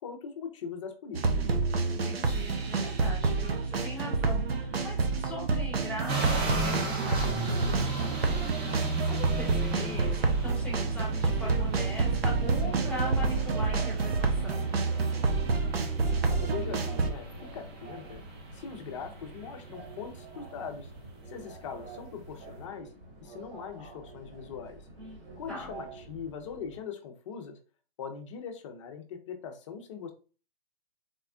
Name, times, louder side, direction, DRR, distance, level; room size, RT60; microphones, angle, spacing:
voice 1, 0.0-1.4 16.3-18.2 18.5-20.9 21.3-22.9 23.2-24.8 25.4-27.6 28.0-30.1, left 6 dB, 30° left, 5 dB, 0.5 m, -41 dB
sound 1, 1.1-17.1, right 4 dB, 80° right, 0.6 m, -28 dB
voice 2, 1.8-14.7 25.0-25.7, left 2 dB, 5° left, -5 dB, 1.0 m, -41 dB
sound 2, 6.1-22.6, right 2 dB, 25° right, 0.5 m, -37 dB
Subway metro underground, 7.6-26.8, right 2 dB, 40° right, 1.4 m, -47 dB
3.5 x 2.1 x 2.4 m, 0.36 s
hypercardioid pair, 135°, 30 cm